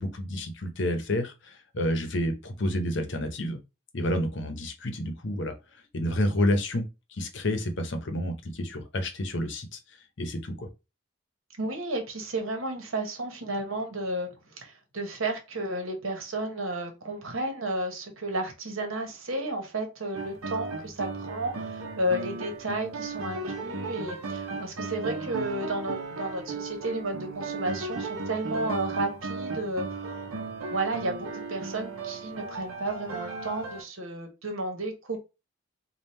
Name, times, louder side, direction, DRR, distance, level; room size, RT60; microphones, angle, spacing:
voice 1, 0.0-3.6 3.9-5.5 5.9-6.9 7.1-9.8 10.2-10.7, left 1 dB, 55° left, 6 dB, 0.8 m, -29 dB
voice 2, 11.6-30.3 30.7-35.2, right 1 dB, 75° right, 4 dB, 1.1 m, -32 dB
sound 1, 20.1-33.8, right 3 dB, 90° right, 0.7 m, -36 dB
3.5 x 2.3 x 4.3 m, 0.27 s
head